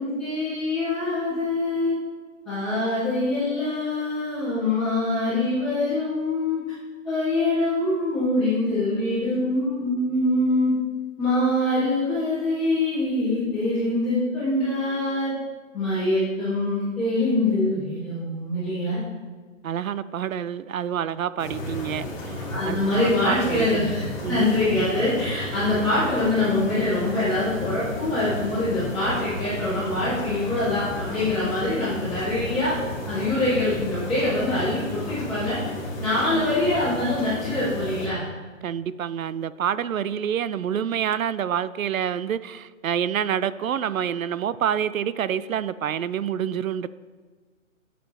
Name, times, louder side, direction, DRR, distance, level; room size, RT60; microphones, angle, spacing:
voice 1, 0.0-2.0 2.4-6.6 7.0-10.7 11.2-15.3 15.7-19.0 22.5-32.7 33.0-35.7 36.0-38.2, left 2 dB, ahead, -24 dB, 0.5 m, -24 dB
voice 2, 19.6-23.8 24.2-24.6 36.3-36.5 38.6-46.9, right 9 dB, 85° right, 16 dB, 0.6 m, -27 dB
sound 1, 21.4-38.1, left 1 dB, 20° left, 2.5 m, -33 dB
11.5 x 7.7 x 3.4 m, 1.5 s
hypercardioid pair, 160°, 40 cm